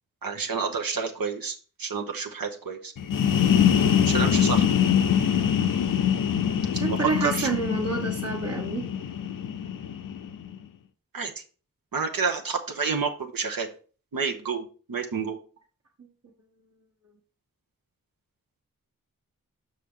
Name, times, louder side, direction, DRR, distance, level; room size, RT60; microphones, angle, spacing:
voice 1, 0.2-2.9 4.1-4.7 6.9-7.5 11.1-11.3 11.9-13.7 14.1-15.4, right 5 dB, 90° right, 2 dB, 1.0 m, -29 dB
sound 1, 3.0-10.6, left 8 dB, 75° left, 0.5 m, -24 dB
voice 2, 3.6-4.2 6.7-8.9, right 3 dB, 50° right, -2 dB, 1.2 m, -29 dB
6.4 x 5.8 x 3.7 m, 0.38 s
wide cardioid pair, 80°, 33 cm